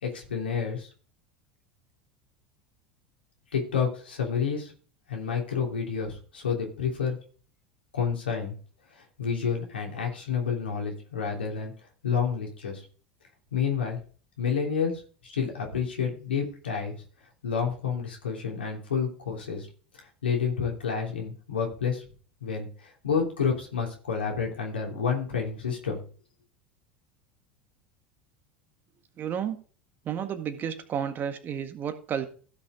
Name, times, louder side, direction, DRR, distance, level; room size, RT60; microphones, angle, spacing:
voice 1, 0.0-0.9 3.5-4.7 5.1-7.2 7.9-8.6 9.2-11.7 12.0-12.8 13.5-14.0 14.4-14.9 15.2-16.9 17.4-19.7 20.2-22.0 22.4-26.0, left 6 dB, 75° left, 1 dB, 3.1 m, -29 dB
voice 2, 29.2-29.6 30.1-32.3, right 8 dB, 35° right, 8 dB, 1.8 m, -31 dB
16.0 x 5.8 x 3.7 m, 0.39 s
figure-of-eight pair, 75°, 6 cm